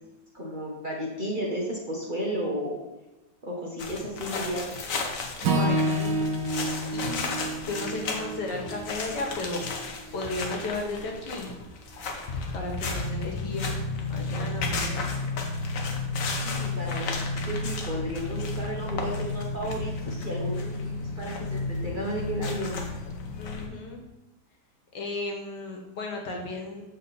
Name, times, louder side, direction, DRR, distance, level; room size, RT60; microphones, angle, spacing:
voice 1, 0.3-2.8 3.4-4.8 12.5-12.7 14.6-14.8 16.4-22.8, right 1 dB, 35° right, -3 dB, 1.0 m, -33 dB
sound 1, 3.8-23.7, left 3 dB, 55° left, 1.2 m, -33 dB
Acoustic guitar / Strum, 5.4-9.7, right 1 dB, 80° right, 1.3 m, -29 dB
voice 2, 5.6-6.2 6.9-7.3 7.6-9.7 10.1-11.5 12.5-13.7 14.1-15.2 23.4-24.0 24.9-26.8, left 2 dB, 75° left, 0 dB, 1.8 m, -34 dB
7.5 x 4.0 x 4.0 m, 1.0 s
omnidirectional pair, 1.9 m